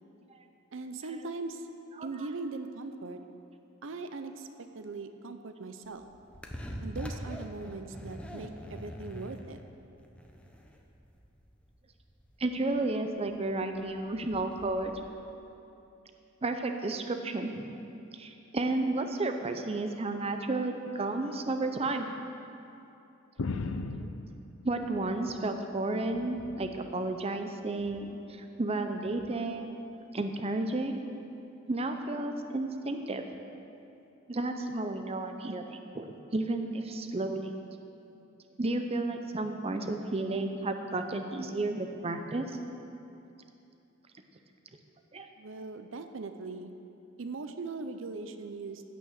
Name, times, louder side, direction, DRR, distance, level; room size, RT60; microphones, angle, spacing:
voice 1, 0.7-1.7 2.0-3.2 3.8-4.5 4.7-6.1 6.8-9.6 45.4-46.7 47.2-48.8, right 3 dB, 70° right, 8 dB, 0.6 m, -40 dB
sound 1, 5.9-15.1, equal, 5° left, 0.8 m, -44 dB
voice 2, 12.4-14.9 16.4-17.7 18.1-22.1 24.0-24.1 24.6-29.7 30.1-31.0 31.7-33.2 34.3-37.6 38.6-42.6 45.1-45.3, right 2 dB, 30° right, 6 dB, 0.6 m, -32 dB
sound 2, 23.4-25.6 26.0-26.9 27.8-28.2 29.2-29.3, left 3 dB, 85° left, 0.6 m, -39 dB
15.5 x 6.1 x 6.5 m, 2.8 s
head